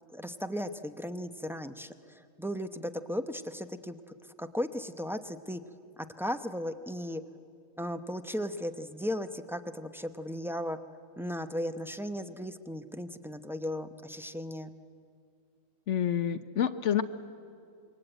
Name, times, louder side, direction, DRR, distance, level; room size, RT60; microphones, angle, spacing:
voice 1, 0.1-5.6 6.0-7.2 7.8-10.8 11.2-14.7, equal, ahead, 8 dB, 0.6 m, -36 dB
voice 2, 15.9-17.0, left 9 dB, 60° left, 12 dB, 1.1 m, -28 dB
26.5 x 23.5 x 9.1 m, 2.4 s
omnidirectional pair, 1.5 m